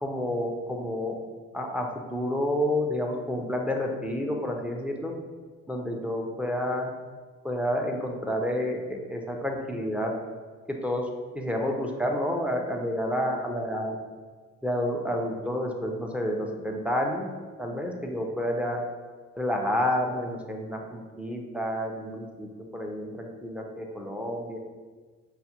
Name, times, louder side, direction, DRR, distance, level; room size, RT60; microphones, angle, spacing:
voice 1, 0.0-1.1 1.5-5.1 5.7-6.9 7.4-10.1 10.8-11.1 11.3-14.0 14.6-17.3 17.6-18.8 19.4-24.6, left 1 dB, 5° right, 1 dB, 0.5 m, -29 dB
5.6 x 2.1 x 2.8 m, 1.5 s
cardioid pair, 90°, 30 cm